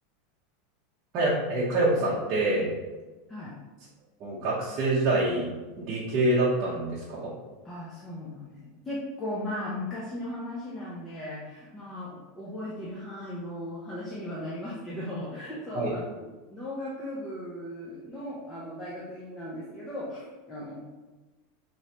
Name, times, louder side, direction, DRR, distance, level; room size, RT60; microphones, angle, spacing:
voice 1, 1.1-2.7 4.2-7.3 15.7-15.9, right 2 dB, 35° right, -7 dB, 0.8 m, -26 dB
voice 2, 7.6-8.6 8.8-20.8, left 1 dB, 10° left, -7 dB, 0.6 m, -37 dB
4.6 x 3.0 x 2.8 m, 1.2 s
supercardioid pair, 175°, 0 cm